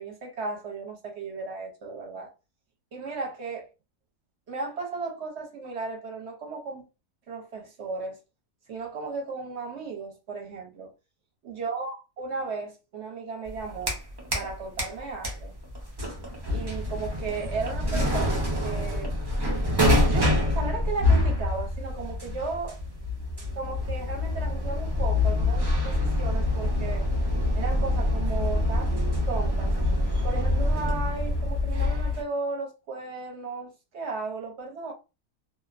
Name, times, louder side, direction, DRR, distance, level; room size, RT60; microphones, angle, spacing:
voice 1, 0.0-2.3 2.9-3.7 4.5-6.9 7.3-8.2 8.7-10.9 11.4-14.0 14.3-15.5 16.5-19.1 20.0-22.8 23.5-27.1 27.5-29.7 30.2-34.9, right 4 dB, 55° right, 0.9 m, -35 dB
sound 1, 13.5-14.5 14.8-32.2, left 1 dB, 40° right, 0.3 m, -26 dB
2.6 x 2.1 x 2.4 m
omnidirectional pair, 1.6 m